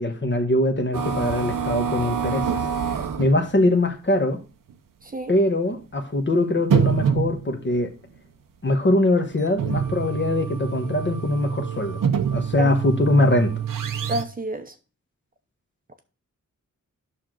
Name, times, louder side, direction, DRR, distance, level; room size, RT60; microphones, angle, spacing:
voice 1, 0.0-2.6 3.2-4.4 5.3-7.9 8.6-12.0 12.3-13.5, left 1 dB, 35° left, 1.3 m, -22 dB
sound 1, 0.9-3.4 4.2-4.3 4.7-4.8 5.7-5.8 6.6-7.7 9.2-14.2, right 7 dB, 85° right, 0.9 m, -26 dB
voice 2, 14.1-14.7, right 2 dB, 25° right, 0.8 m, -28 dB
9.7 x 6.3 x 3.9 m
wide cardioid pair, 110°, 32 cm